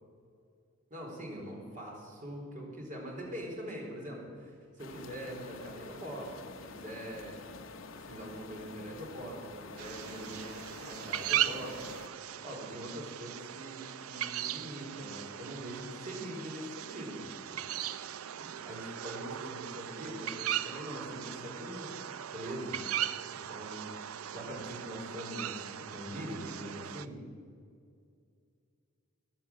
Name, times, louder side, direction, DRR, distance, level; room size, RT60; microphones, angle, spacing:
voice 1, 0.9-6.3 6.7-7.6 7.9-10.5 10.8-11.8 12.4-17.6 18.4-21.9 22.3-24.0 24.3-27.2, equal, 40° right, -2 dB, 4.1 m, -43 dB
sound 1, 4.8-12.1, left 4 dB, 65° left, 0.9 m, -48 dB
sound 2, 9.8-27.1, right 11 dB, 90° right, 0.5 m, -38 dB
14.5 x 10.5 x 7.4 m, 2.4 s
head